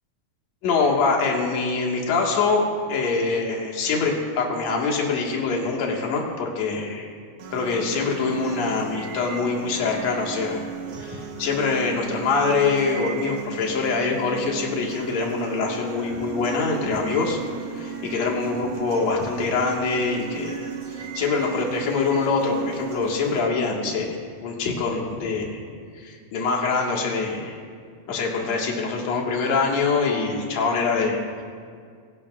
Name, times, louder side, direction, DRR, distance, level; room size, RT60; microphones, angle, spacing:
voice 1, 0.6-7.1 7.5-10.6 10.9-17.4 17.7-25.6 26.0-27.6 28.1-31.4, left 4 dB, 65° left, -1 dB, 2.9 m, -24 dB
sound 1, 7.4-23.4, right 7 dB, 60° right, 1.9 m, -36 dB
27.5 x 16.5 x 2.4 m, 2.1 s
omnidirectional pair, 3.6 m